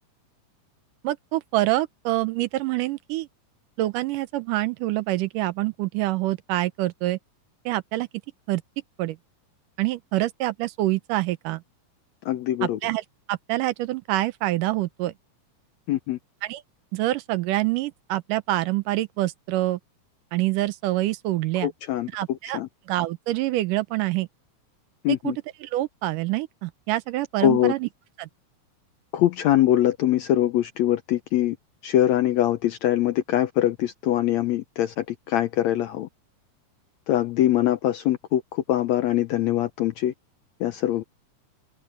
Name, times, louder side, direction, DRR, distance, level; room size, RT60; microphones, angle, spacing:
voice 1, 1.0-3.3 3.8-7.2 7.7-8.1 8.5-8.6 9.0-9.2 9.8-11.6 12.6-15.1 16.4-16.6 16.9-19.8 20.3-21.7 22.1-22.6 22.9-24.3 25.1-25.3 25.6-27.9 28.2-28.3, right 17 dB, 80° right, 2.3 m, -26 dB
voice 2, 12.2-12.8 15.9-16.2 21.6-22.7 25.0-25.4 27.4-27.7 29.1-31.6 31.8-36.1 37.1-40.1 40.6-41.0, left 12 dB, 80° left, 1.6 m, -23 dB
open air
omnidirectional pair, 3.9 m